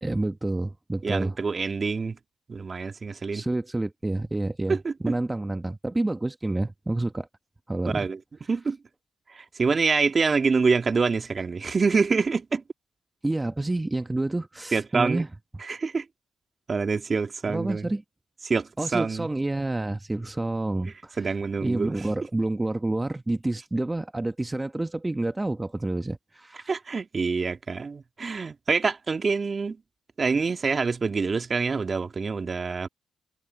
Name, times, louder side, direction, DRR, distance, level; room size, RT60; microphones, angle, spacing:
voice 1, 0.0-1.4 3.3-4.8 5.0-7.3 7.7-8.1 13.2-15.3 17.5-18.0 18.8-26.7, right 2 dB, 20° right, 1.1 m, -29 dB
voice 2, 1.0-2.2 2.5-3.4 4.7-5.2 7.9-8.2 8.5-8.8 9.3-12.6 14.7-15.3 15.6-16.1 16.7-17.9 18.4-19.3 21.2-22.0 26.7-29.8 30.2-32.9, right 4 dB, 45° right, 2.4 m, -26 dB
supercardioid pair, 50°, 0 cm